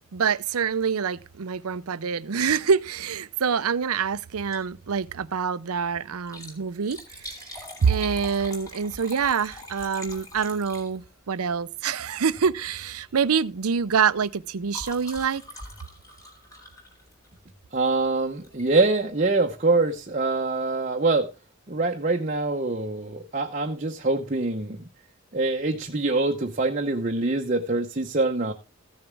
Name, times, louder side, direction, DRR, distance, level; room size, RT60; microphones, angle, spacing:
voice 1, 0.1-15.4, right 6 dB, 80° right, 0.6 m, -26 dB
Liquid, 4.5-4.8 5.1-5.2 6.1-11.3 12.3-12.5 12.9-13.1 13.4-17.5 18.4-18.7 19.2-19.3 19.5-19.6, left 1 dB, 15° left, 3.4 m, -43 dB
voice 2, 17.7-21.3 21.7-24.9 25.3-28.5, right 3 dB, 35° right, 0.8 m, -24 dB
15.0 x 7.0 x 3.4 m
head